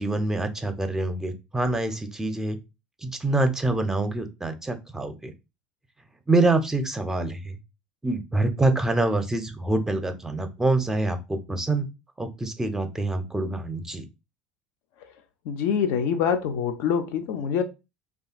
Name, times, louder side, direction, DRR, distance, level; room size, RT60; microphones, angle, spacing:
voice 1, 0.0-2.6 3.0-5.3 6.3-7.6 8.0-11.9 12.2-14.0, right 2 dB, 10° right, 0.5 m, -25 dB
voice 2, 15.5-17.6, left 7 dB, 60° left, 0.4 m, -25 dB
2.7 x 2.3 x 2.4 m
hypercardioid pair, 70°, 4 cm